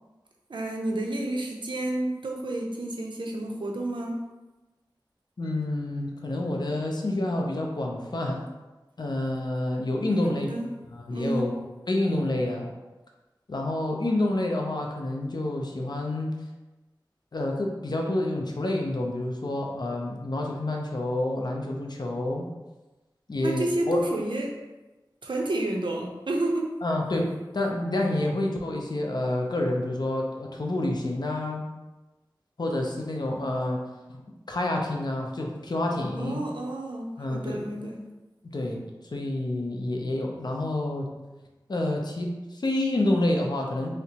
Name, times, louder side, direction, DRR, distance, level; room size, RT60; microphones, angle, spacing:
voice 1, 0.5-4.2 10.1-10.7 11.1-11.5 23.4-24.5 25.2-26.7 36.1-38.0, right 1 dB, 75° right, 0 dB, 0.5 m, -30 dB
voice 2, 5.4-8.4 9.0-10.5 10.9-11.6 11.9-12.7 13.5-16.3 17.3-22.4 23.3-24.0 26.8-31.6 32.6-33.8 34.1-34.2 34.5-36.4 37.2-37.7 38.4-38.8 39.1-41.1 41.7-43.9, left 1 dB, 60° left, 0 dB, 0.5 m, -28 dB
3.2 x 2.8 x 2.8 m, 1.1 s
wide cardioid pair, 60°, 8 cm